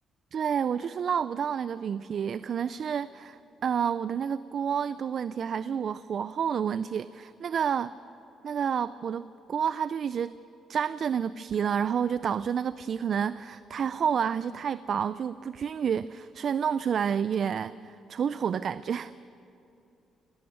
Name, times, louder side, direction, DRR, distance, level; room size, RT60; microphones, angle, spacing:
voice 1, 0.3-7.9 8.4-10.4 10.7-19.1, right 7 dB, 55° right, 16 dB, 0.4 m, -29 dB
18.5 x 17.5 x 9.3 m, 2.8 s
cardioid pair, 90°, 0 cm